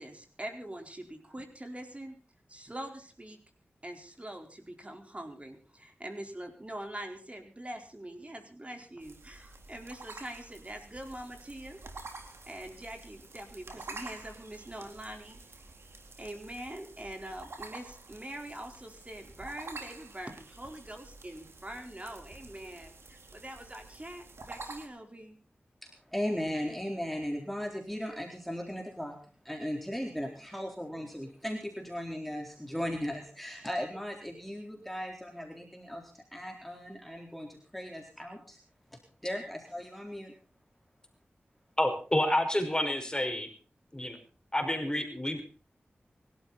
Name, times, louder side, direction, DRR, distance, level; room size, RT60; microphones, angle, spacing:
voice 1, 0.0-2.2 2.5-3.4 3.8-11.8 12.1-15.4 16.2-25.4, right 1 dB, 30° right, 4 dB, 4.3 m, -44 dB
sound 1, 9.0-24.9, right 3 dB, 80° right, 3.6 m, -48 dB
voice 2, 25.8-29.2 29.4-38.6 39.2-40.3, equal, 5° left, 1 dB, 4.0 m, -37 dB
voice 3, 41.8-43.5 43.9-44.2 44.5-45.4, left 1 dB, 20° left, 6 dB, 5.2 m, -29 dB
24.0 x 12.5 x 4.2 m, 0.38 s
cardioid pair, 40°, 4 cm